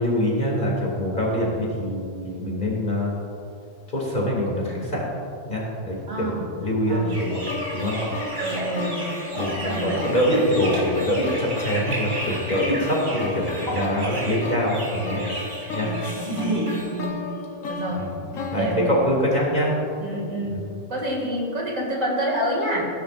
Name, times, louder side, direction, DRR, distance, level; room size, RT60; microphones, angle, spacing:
voice 1, 0.0-3.1 3.9-5.1 5.4-7.4 7.7-8.0 9.3-15.3 15.7-15.9 17.9-18.2 18.5-19.8 20.4-20.7, equal, 35° left, -4 dB, 2.8 m, -24 dB
voice 2, 6.1-6.4 6.9-7.2 8.4-9.0 9.6-10.0 15.8-17.2 17.7-18.0 18.5-19.0 20.0-20.6 20.9-22.8, right 1 dB, 80° right, -2 dB, 2.7 m, -28 dB
sound 1, 7.1-16.8, right 1 dB, 60° right, 3.4 m, -32 dB
sound 2, 7.5-19.7, left 3 dB, 85° left, 1.4 m, -34 dB
17.0 x 10.0 x 2.6 m, 2.5 s
omnidirectional pair, 1.3 m